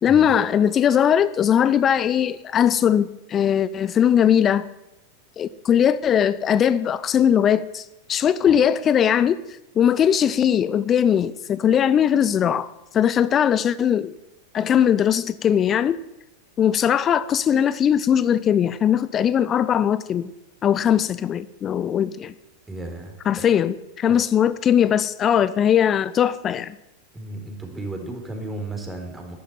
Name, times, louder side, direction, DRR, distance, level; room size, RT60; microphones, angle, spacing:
voice 1, 0.0-4.7 5.4-9.4 9.8-14.1 14.5-16.0 16.6-20.3 20.6-22.3 23.3-26.7, left 9 dB, 30° left, 16 dB, 0.6 m, -20 dB
voice 2, 22.7-23.4 24.1-24.2 27.1-29.4, right 2 dB, 10° right, 3 dB, 4.0 m, -34 dB
11.5 x 11.5 x 9.4 m, 0.94 s
figure-of-eight pair, 90°, 0 cm